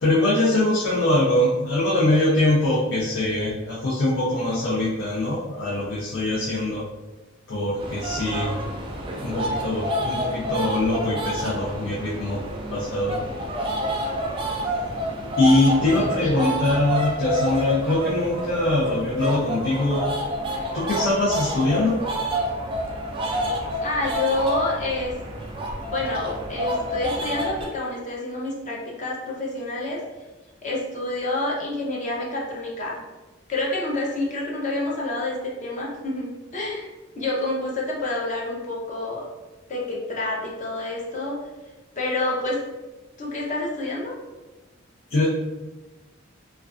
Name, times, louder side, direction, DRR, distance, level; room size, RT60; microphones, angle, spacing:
voice 1, 0.0-6.8 7.5-8.5 9.2-12.4 12.7-13.2 15.4-20.1 20.7-22.0 45.1-45.3, left 2 dB, 85° left, -7 dB, 0.5 m, -22 dB
sound 1, 7.8-27.7, right 1 dB, 25° right, 0.3 m, -29 dB
voice 2, 15.8-16.7 23.8-25.1 25.9-30.0 30.6-33.0 33.5-36.9 37.2-39.2 39.7-41.4 42.0-42.6 43.2-44.1, left 2 dB, 40° left, -3 dB, 0.5 m, -28 dB
2.4 x 2.2 x 2.3 m, 1.2 s
head